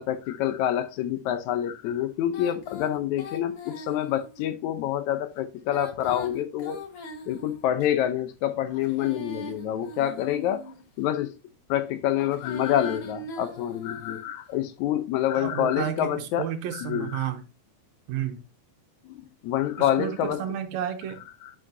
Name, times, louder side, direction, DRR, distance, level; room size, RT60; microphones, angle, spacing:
voice 1, 0.0-6.8 7.3-10.6 11.0-11.3 11.7-17.3 19.1-20.4 21.4-21.5, left 11 dB, 75° left, 2.0 m, -27 dB
Female singing, 2.3-4.5 5.6-7.9 8.7-10.8 12.1-14.3, left 2 dB, 55° left, 2.1 m, -41 dB
voice 2, 15.3-17.4 18.1-18.4 19.8-21.3, right 10 dB, 75° right, 2.0 m, -31 dB
9.5 x 6.1 x 2.7 m
omnidirectional pair, 3.5 m